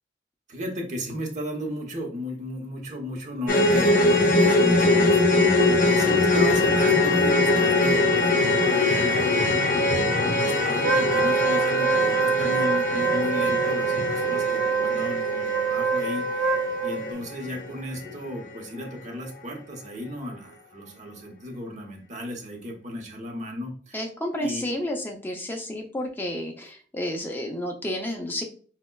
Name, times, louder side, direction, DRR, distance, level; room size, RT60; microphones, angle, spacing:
voice 1, 0.5-5.2 5.6-9.5 10.4-24.0 24.4-24.6, left 1 dB, 40° right, 2 dB, 0.8 m, -35 dB
sound 1, 3.5-17.7 17.9-18.1 18.6-18.7, left 2 dB, 50° left, 0.8 m, -22 dB
Wind instrument woodwind instrument, 10.8-17.1, right 5 dB, 90° right, 0.4 m, -25 dB
voice 2, 23.9-28.4, left 1 dB, 10° left, 1 dB, 0.4 m, -31 dB
5.2 x 2.1 x 2.2 m, 0.42 s
head